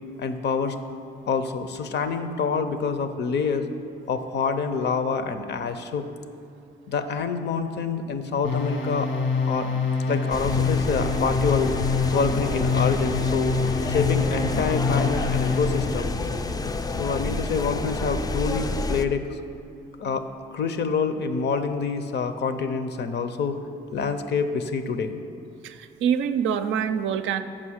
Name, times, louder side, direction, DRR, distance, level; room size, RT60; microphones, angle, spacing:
voice 1, 0.2-0.8 1.3-3.7 4.1-6.1 6.9-11.7 12.1-13.6 13.9-16.1 17.0-19.4 20.0-23.6 23.9-25.2, left 5 dB, 60° left, 9 dB, 0.6 m, -27 dB
sound 1, 8.4-16.0, left 4 dB, 80° left, 1.4 m, -26 dB
sound 2, 10.3-19.0, left 3 dB, 20° left, 0.4 m, -29 dB
voice 2, 25.6-27.4, right 8 dB, 80° right, 9 dB, 0.5 m, -25 dB
7.4 x 5.4 x 6.4 m, 2.4 s
cardioid pair, 90°, 20 cm